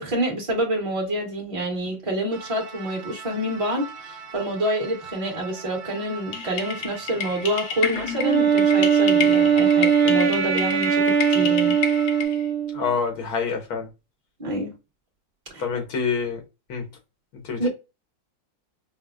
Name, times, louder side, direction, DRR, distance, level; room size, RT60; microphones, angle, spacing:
voice 1, 0.0-11.8 14.4-14.7 15.5-15.6 17.6-17.7, right 1 dB, 25° right, 1.1 m, -27 dB
sound 1, 2.3-12.2, right 5 dB, 90° right, 1.3 m, -42 dB
sound 2, 6.3-12.5, left 6 dB, 70° left, 1.1 m, -31 dB
Wind instrument woodwind instrument, 8.2-12.9, right 7 dB, 65° right, 0.7 m, -20 dB
voice 2, 12.7-13.9 15.6-16.4 16.7-16.8 17.4-17.7, left 5 dB, 85° left, 1.5 m, -26 dB
5.2 x 2.0 x 2.3 m
omnidirectional pair, 1.6 m